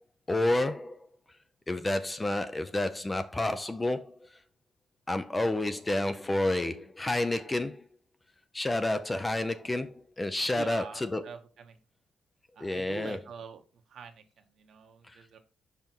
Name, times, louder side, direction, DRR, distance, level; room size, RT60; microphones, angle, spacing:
voice 1, 0.3-1.0 1.7-4.3 5.1-7.9 8.5-11.2 12.6-13.2 15.1-15.2, left 1 dB, 15° left, 0.5 m, -30 dB
voice 2, 10.5-11.8 12.5-15.4, right 6 dB, 60° right, 1.1 m, -45 dB
5.6 x 5.2 x 4.5 m
cardioid pair, 140°, 0 cm